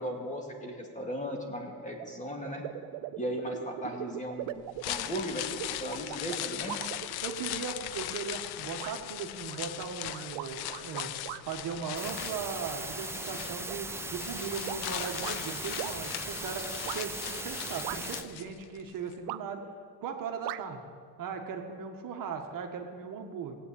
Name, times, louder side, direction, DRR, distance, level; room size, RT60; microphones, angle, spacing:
voice 1, 0.0-2.6 3.2-6.9, equal, 15° left, 1 dB, 2.3 m, -37 dB
sound 1, 2.0-2.1 2.4-7.5 8.1-8.5 8.8-9.0 9.5-11.4 11.8-12.7 13.1-15.4 15.8-16.0 16.9-17.0 17.8-18.3 19.3-19.7 20.4-20.6, right 15 dB, 75° right, 0.7 m, -40 dB
sound 2, 4.6-18.8 19.1-19.2, left 14 dB, 65° left, 0.6 m, -39 dB
voice 2, 7.2-11.1 11.5-16.7 16.9-19.6 20.0-20.8 21.2-23.6, right 6 dB, 50° right, 4 dB, 1.5 m, -38 dB
sound 3, 12.0-18.2, right 2 dB, 5° right, 0.5 m, -39 dB
18.0 x 8.5 x 8.6 m, 2.1 s
cardioid pair, 140°, 42 cm